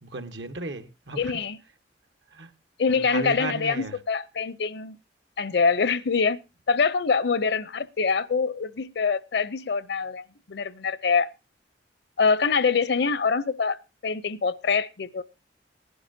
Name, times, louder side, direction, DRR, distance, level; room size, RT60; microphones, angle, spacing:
voice 1, 0.0-1.4 2.3-2.5 2.9-4.0, right 2 dB, 80° right, 1.4 m, -35 dB
voice 2, 1.2-1.6 2.8-5.0 5.4-6.4 6.7-11.3 12.2-13.8 14.0-15.2, left 5 dB, 65° left, 0.6 m, -24 dB
19.0 x 11.0 x 2.6 m
head